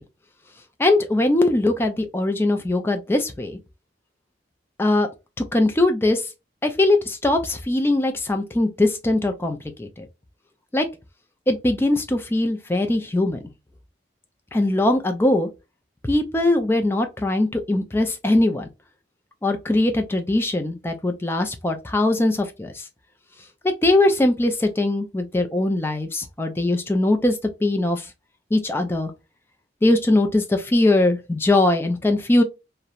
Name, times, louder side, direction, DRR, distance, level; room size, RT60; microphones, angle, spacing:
voice 1, 0.8-3.6 4.8-5.1 5.5-6.2 6.6-10.1 10.7-10.9 11.5-13.4 14.5-15.5 16.0-18.7 19.4-22.8 23.6-28.1 28.5-29.1 29.8-32.4, left 2 dB, 10° left, 0.3 m, -21 dB
2.8 x 2.0 x 2.3 m
head